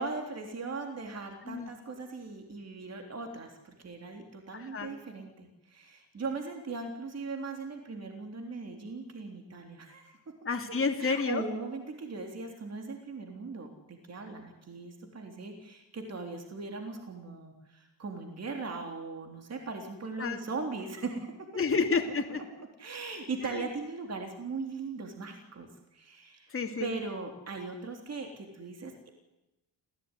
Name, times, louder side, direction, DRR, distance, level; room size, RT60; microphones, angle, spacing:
voice 1, 0.0-10.2 11.0-21.3 21.9-22.0 22.8-26.5 26.8-28.9, right 3 dB, 35° right, 4 dB, 3.4 m, -39 dB
voice 2, 4.5-4.9 10.4-11.4 20.2-20.4 21.5-22.2 23.4-23.6 26.5-26.9, left 5 dB, 25° left, 4 dB, 2.8 m, -30 dB
28.0 x 16.0 x 9.9 m, 0.97 s
cardioid pair, 150°, 46 cm